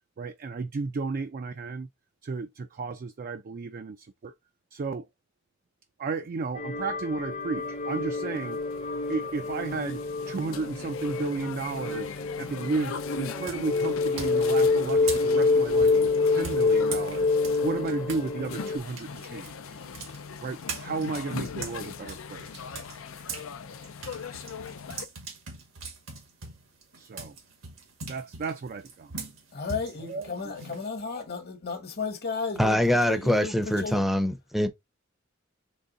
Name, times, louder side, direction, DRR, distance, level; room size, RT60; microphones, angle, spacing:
voice 1, 0.2-1.9 2.2-4.3 4.7-5.1 6.0-8.6 9.1-10.0 10.3-17.3 17.6-19.8 20.4-22.7 27.0-27.4 28.1-29.1 30.0-30.5, right 4 dB, 45° right, 0.4 m, -33 dB
sound 1, 6.6-18.8, left 3 dB, 35° left, 0.7 m, -27 dB
sound 2, 7.5-25.1, left 5 dB, 80° left, 0.5 m, -40 dB
sound 3, 12.5-12.9 13.4-18.3 18.6-23.5 23.8-31.2, right 4 dB, 90° right, 1.8 m, -41 dB
voice 2, 29.5-34.0, left 4 dB, 50° left, 1.1 m, -34 dB
voice 3, 32.6-34.7, equal, ahead, 0.6 m, -24 dB
3.9 x 3.4 x 3.8 m
head